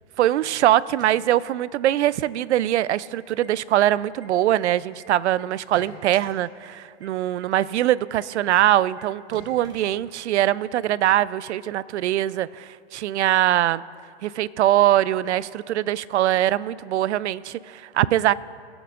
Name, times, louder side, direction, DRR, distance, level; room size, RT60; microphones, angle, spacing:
voice 1, 0.2-13.8 14.2-18.3, right 13 dB, 90° right, 19 dB, 0.5 m, -22 dB
sound 1, 0.8-1.9 2.2-2.3 2.6-3.1 3.4-5.0 5.4-6.3 6.6-6.7 7.0-7.1 7.4-7.5 7.8-7.9 8.2-8.3 8.6-8.7 9.0-9.1 9.3-10.4, right 2 dB, 10° right, 1.4 m, -46 dB
20.5 x 8.0 x 2.5 m, 2.2 s
hypercardioid pair, 145°, 33 cm